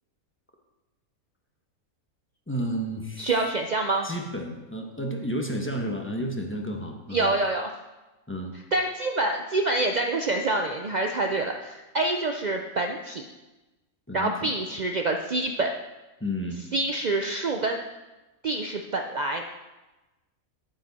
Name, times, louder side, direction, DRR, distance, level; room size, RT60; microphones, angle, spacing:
voice 1, 2.5-3.3 4.0-7.3 8.3-8.5 14.1-14.6 16.2-16.6, equal, 10° left, 2 dB, 1.0 m, -31 dB
voice 2, 3.2-4.1 7.1-7.7 8.7-13.3 14.1-15.7 16.7-17.8 18.4-19.4, right 2 dB, 70° right, 3 dB, 0.4 m, -26 dB
11.0 x 9.0 x 4.2 m, 1.1 s
omnidirectional pair, 1.5 m